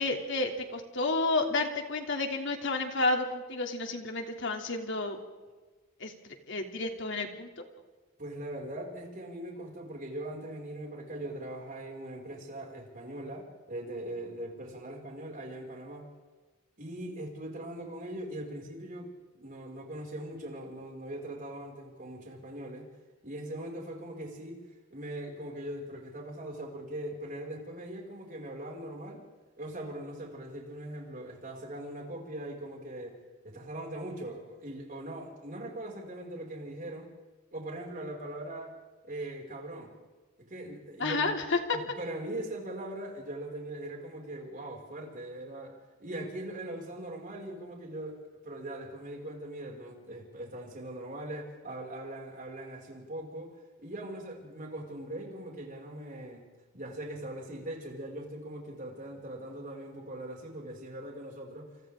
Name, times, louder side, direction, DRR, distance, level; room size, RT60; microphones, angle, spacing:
voice 1, 0.0-5.2 6.0-7.5 41.0-41.8, left 3 dB, 60° left, 3 dB, 3.0 m, -31 dB
voice 2, 8.2-16.1 16.8-22.9 23.2-29.3 29.6-33.2 33.4-37.1 37.5-38.8 39.0-39.9 40.4-41.3 41.7-56.5 56.7-61.7, right 1 dB, 40° right, 0 dB, 5.9 m, -41 dB
29.0 x 28.5 x 3.8 m, 1.3 s
head